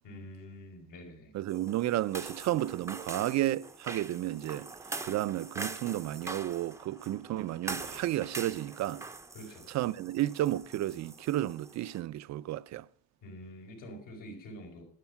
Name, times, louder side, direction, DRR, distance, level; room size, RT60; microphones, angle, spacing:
voice 1, 0.0-1.3 9.3-9.6 13.2-14.8, equal, 75° left, 5.6 m, -46 dB
voice 2, 1.3-4.7 5.0-9.0 9.7-12.9, right 14 dB, 55° right, 0.6 m, -32 dB
sound 1, 1.5-12.0, right 3 dB, 10° right, 0.7 m, -43 dB
13.0 x 12.0 x 5.8 m
cardioid pair, 160°, 33 cm